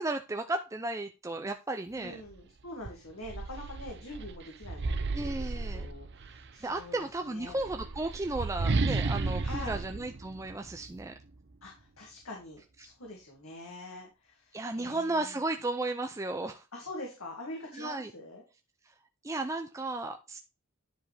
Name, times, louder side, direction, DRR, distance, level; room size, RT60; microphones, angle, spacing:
voice 1, 0.0-2.2 5.1-5.9 6.6-11.1 14.5-16.6 17.7-18.1 19.2-20.4, right 2 dB, 15° right, 6 dB, 0.5 m, -34 dB
voice 2, 2.0-7.6 9.4-9.8 11.6-15.3 16.7-18.4, left 1 dB, 70° left, -1 dB, 2.1 m, -45 dB
sound 1, 2.3-2.4 2.8-6.5 7.4-11.0, right 3 dB, 50° right, 0.7 m, -33 dB
10.0 x 5.0 x 3.4 m, 0.28 s
head